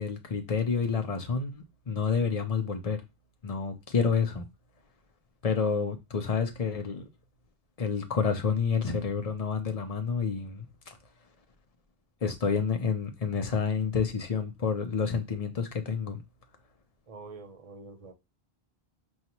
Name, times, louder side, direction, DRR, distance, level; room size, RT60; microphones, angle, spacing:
voice 1, 0.0-3.0 3.4-4.5 5.4-7.1 7.8-10.7 12.2-16.2, left 5 dB, 40° left, 0.7 m, -29 dB
voice 2, 17.1-18.1, right 3 dB, 40° right, 0.7 m, -46 dB
5.3 x 2.4 x 2.9 m
omnidirectional pair, 1.1 m